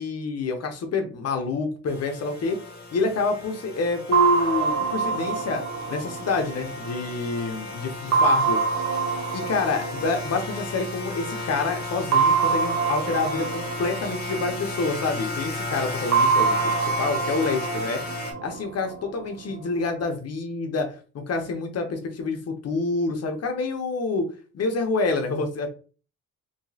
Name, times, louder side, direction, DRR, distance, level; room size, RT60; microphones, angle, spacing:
voice 1, 0.0-2.6 2.9-5.6 5.9-8.6 9.3-18.0 18.4-22.4 22.6-24.3 24.5-25.7, left 3 dB, 55° left, 5 dB, 0.9 m, -27 dB
sound 1, 1.9-18.3, left 2 dB, 30° left, 1.1 m, -35 dB
sound 2, 4.1-7.4 8.1-11.0 12.1-15.2 16.1-19.2, right 5 dB, 60° right, 0.7 m, -25 dB
3.1 x 2.9 x 2.8 m, 0.36 s
cardioid pair, 90°, 30 cm